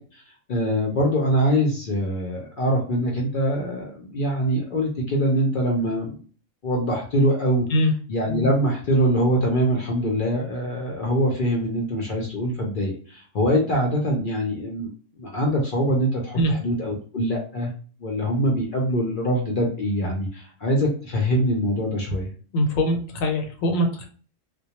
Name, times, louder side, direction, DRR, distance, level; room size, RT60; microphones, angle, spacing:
voice 1, 0.5-6.2 6.6-7.7 8.1-14.9 15.2-17.7 18.0-22.3, equal, 60° left, -1 dB, 0.5 m, -23 dB
voice 2, 22.5-24.1, equal, 90° left, 3 dB, 1.0 m, -22 dB
2.2 x 2.1 x 2.8 m, 0.41 s
omnidirectional pair, 1.4 m